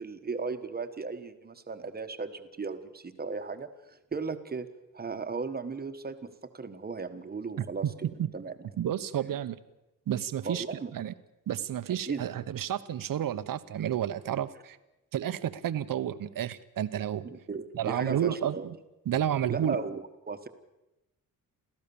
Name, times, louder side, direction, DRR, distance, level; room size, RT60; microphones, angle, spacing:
voice 1, 0.0-4.7 4.9-8.5 10.4-10.9 12.1-12.2 17.2-18.7 19.5-20.5, right 4 dB, 25° right, 9 dB, 1.3 m, -36 dB
voice 2, 7.6-7.9 8.2-8.3 8.8-9.6 10.1-11.1 11.5-14.8 15.1-17.3 17.7-18.8 19.1-19.8, right 10 dB, 70° right, 13 dB, 1.0 m, -31 dB
29.0 x 14.5 x 7.1 m, 0.97 s
wide cardioid pair, 165°, 35 cm